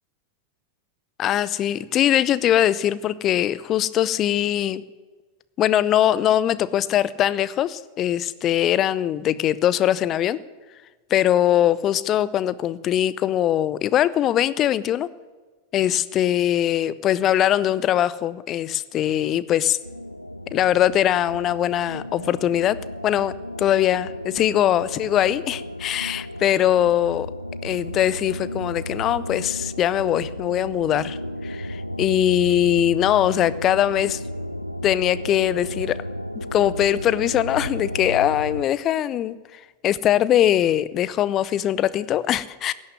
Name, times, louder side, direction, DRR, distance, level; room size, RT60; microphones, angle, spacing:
voice 1, 1.2-4.8 5.6-10.4 11.1-15.1 15.7-19.8 20.5-22.8 23.0-23.3 23.6-27.3 27.6-31.2 31.4-34.2 34.8-36.0 36.3-42.7, left 11 dB, 30° left, 18 dB, 0.6 m, -21 dB
sound 1, 19.8-38.6, equal, 90° left, 0.4 m, -33 dB
17.0 x 6.5 x 9.5 m, 1.3 s
figure-of-eight pair, 90°, 0 cm